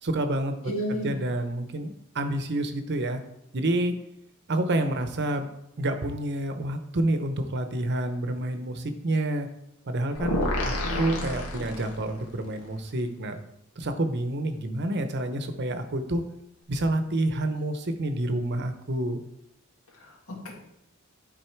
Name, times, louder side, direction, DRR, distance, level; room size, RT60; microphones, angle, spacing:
voice 1, 0.0-3.2 3.5-4.0 4.5-5.5 5.8-9.5 9.9-13.4 13.8-16.2 16.7-19.2, right 1 dB, 50° right, 8 dB, 0.8 m, -28 dB
voice 2, 0.6-1.2 10.4-10.6 10.8-11.3 19.9-20.5, equal, 70° left, 0 dB, 2.0 m, -33 dB
sound 1, 10.1-12.3, left 1 dB, 90° left, 1.5 m, -29 dB
11.0 x 4.1 x 4.5 m, 0.85 s
head